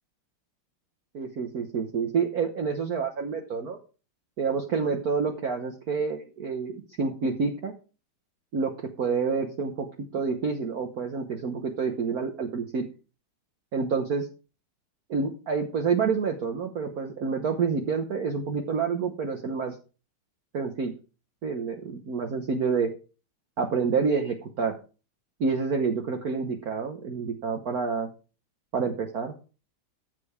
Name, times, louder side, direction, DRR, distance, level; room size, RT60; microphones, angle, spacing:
voice 1, 1.1-3.8 4.4-7.7 8.5-12.8 13.7-14.3 15.1-19.7 20.5-20.9 21.4-22.9 23.6-24.8 25.4-28.1 28.7-29.3, right 5 dB, 50° right, 2 dB, 1.4 m, -28 dB
13.0 x 7.7 x 3.6 m, 0.34 s
omnidirectional pair, 2.4 m